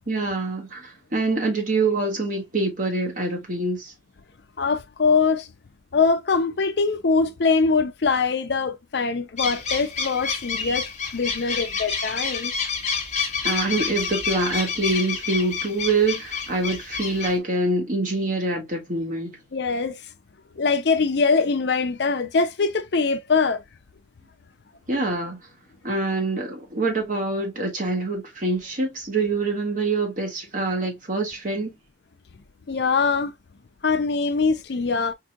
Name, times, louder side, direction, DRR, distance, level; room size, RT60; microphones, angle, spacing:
voice 1, 0.1-3.9 13.4-19.4 24.9-25.4 25.8-31.7, right 2 dB, 45° right, 1.5 m, -25 dB
voice 2, 4.6-5.5 5.9-10.9 11.1-12.5 19.5-20.0 20.6-23.6 32.7-33.3 33.8-35.1, left 4 dB, 60° left, 0.5 m, -22 dB
sound 1, 9.4-17.4, left 5 dB, 40° left, 1.1 m, -29 dB
4.9 x 2.6 x 2.3 m
head